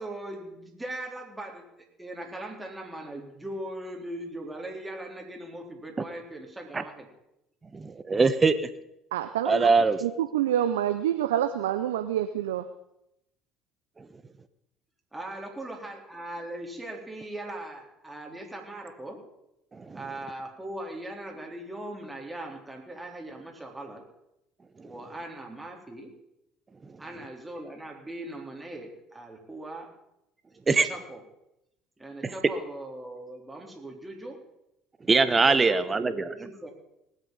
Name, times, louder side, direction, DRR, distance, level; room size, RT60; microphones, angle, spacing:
voice 1, 0.0-1.6 2.0-7.1 15.1-19.2 19.9-24.0 24.8-26.1 27.0-29.9 30.8-31.2 32.0-34.4 35.4-36.7, right 1 dB, 10° right, 0 dB, 3.7 m, -39 dB
voice 2, 7.7-8.6 9.5-10.0 19.8-20.0 30.7-30.9 32.2-32.3 35.1-36.3, right 4 dB, 25° right, 12 dB, 1.2 m, -22 dB
voice 3, 9.1-9.7 10.0-12.7, right 11 dB, 80° right, 9 dB, 0.6 m, -27 dB
19.5 x 8.3 x 5.4 m, 0.83 s
hypercardioid pair, 60°, 0 cm